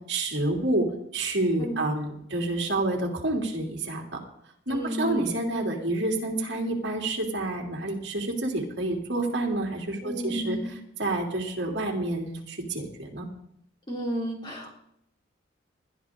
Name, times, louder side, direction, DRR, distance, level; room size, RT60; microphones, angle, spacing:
voice 1, 0.1-0.9 1.1-4.2 4.7-13.3, right 2 dB, 60° right, 1 dB, 2.8 m, -28 dB
voice 2, 4.7-5.3 10.0-10.7 13.9-14.7, equal, 25° left, -2 dB, 3.8 m, -32 dB
20.5 x 12.0 x 3.7 m, 0.74 s
head